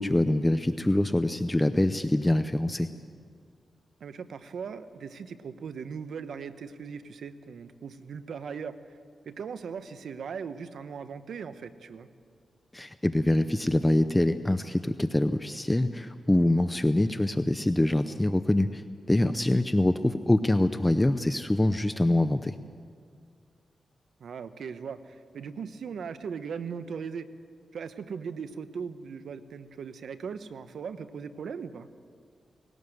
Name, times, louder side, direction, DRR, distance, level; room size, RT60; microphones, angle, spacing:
voice 1, 0.0-2.9 12.7-18.8 19.1-22.6, left 1 dB, 15° left, 10 dB, 0.6 m, -24 dB
voice 2, 4.0-8.8 9.2-12.1 24.2-27.3 27.7-31.9, right 6 dB, 80° right, 11 dB, 0.9 m, -39 dB
19.5 x 17.5 x 7.9 m, 2.1 s
cardioid pair, 80°, 0 cm